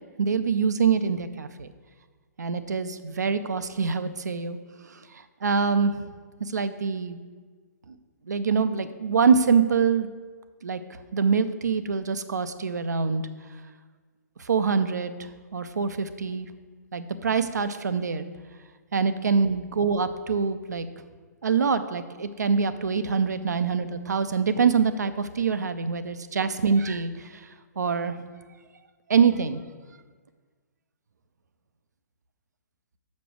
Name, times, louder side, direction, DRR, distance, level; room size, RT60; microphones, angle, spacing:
voice 1, 0.2-1.7 2.4-4.6 4.9-6.0 6.4-7.2 7.9-8.0 8.3-10.1 10.6-10.8 11.1-13.2 14.4-15.1 15.5-16.5 16.9-18.3 18.9-20.9 21.4-27.5 27.8-28.2 29.1-29.6, right 5 dB, 75° right, 11 dB, 0.5 m, -25 dB
6.7 x 5.2 x 6.1 m, 1.5 s
figure-of-eight pair, 125°, 9 cm